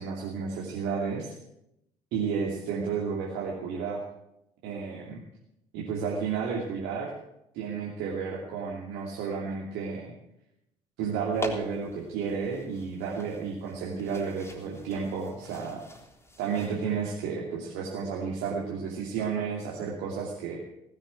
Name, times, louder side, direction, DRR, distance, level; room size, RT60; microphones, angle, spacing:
voice 1, 0.0-1.3 2.1-4.0 4.6-5.2 5.7-7.1 7.5-10.1 11.0-15.8 16.4-20.6, right 6 dB, 60° right, -3 dB, 2.7 m, -32 dB
sound 1, 11.3-16.8, left 2 dB, 15° left, 3.7 m, -43 dB
19.0 x 7.4 x 8.9 m, 0.84 s
figure-of-eight pair, 50°, 19 cm